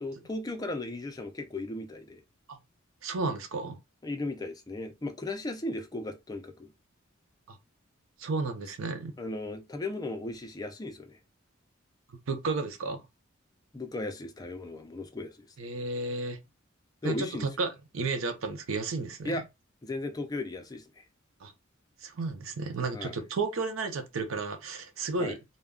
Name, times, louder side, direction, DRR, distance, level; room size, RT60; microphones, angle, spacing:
voice 1, 0.0-2.2 4.0-6.7 9.2-11.2 13.7-15.5 17.0-17.5 19.2-19.4 19.8-21.0 22.9-23.2 25.2-25.4, left 2 dB, 20° left, 0.4 m, -36 dB
voice 2, 3.0-3.8 7.5-7.6 8.2-9.2 12.3-13.1 15.6-16.4 17.0-19.4 21.4-21.5 22.0-25.4, right 3 dB, 80° right, 0.6 m, -33 dB
2.2 x 2.1 x 3.5 m
head